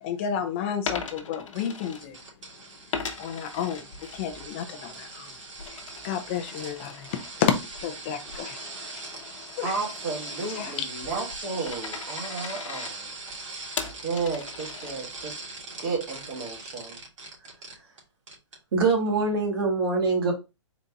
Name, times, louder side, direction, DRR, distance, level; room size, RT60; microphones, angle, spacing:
voice 1, 0.0-2.2 3.2-5.3 5.7-8.6 8.9-9.2 9.6-9.7 10.5-10.7, left 8 dB, 25° left, 0.5 m, -31 dB
Coin (dropping), 0.7-2.5 2.9-4.5 4.9-15.3, left 5 dB, 75° left, 0.9 m, -40 dB
sound 1, 1.5-18.0 18.3-18.6 18.9-19.0, right 3 dB, 80° right, 1.8 m, -41 dB
voice 2, 9.6-13.1 14.0-15.3 15.8-17.0, right 4 dB, 30° right, 1.1 m, -33 dB
voice 3, 18.7-20.3, right 3 dB, 50° right, 1.7 m, -23 dB
4.0 x 2.6 x 3.4 m
hypercardioid pair, 165°, 16 cm